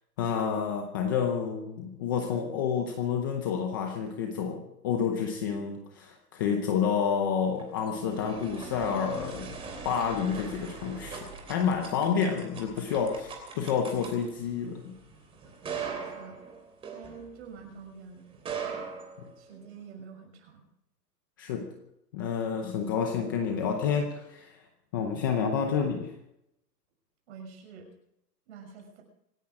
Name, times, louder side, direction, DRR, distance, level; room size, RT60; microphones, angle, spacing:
voice 1, 0.2-9.6 9.8-14.9 19.2-19.3 21.4-21.7 22.1-24.6 24.9-26.1, left 7 dB, 15° left, 4 dB, 0.7 m, -29 dB
sound 1, 7.3-17.7 18.3-19.8, right 5 dB, 10° right, 3.1 m, -41 dB
voice 2, 16.0-16.5 16.9-18.3 19.4-20.6 27.3-27.9 28.5-29.0, right 6 dB, 40° right, 3 dB, 6.2 m, -47 dB
26.0 x 10.0 x 4.9 m, 0.81 s
hypercardioid pair, 160°, 49 cm